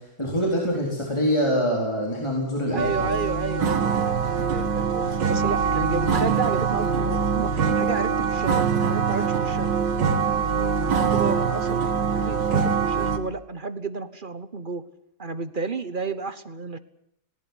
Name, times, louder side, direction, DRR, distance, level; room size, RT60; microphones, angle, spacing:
voice 1, 0.0-3.1, equal, 15° left, -1 dB, 4.4 m, -25 dB
voice 2, 2.7-9.8 10.4-14.8 15.2-16.8, right 4 dB, 35° right, 13 dB, 1.1 m, -32 dB
sound 1, 2.8-13.2, right 6 dB, 90° right, 2.4 m, -23 dB
19.5 x 18.5 x 9.8 m, 0.73 s
omnidirectional pair, 1.9 m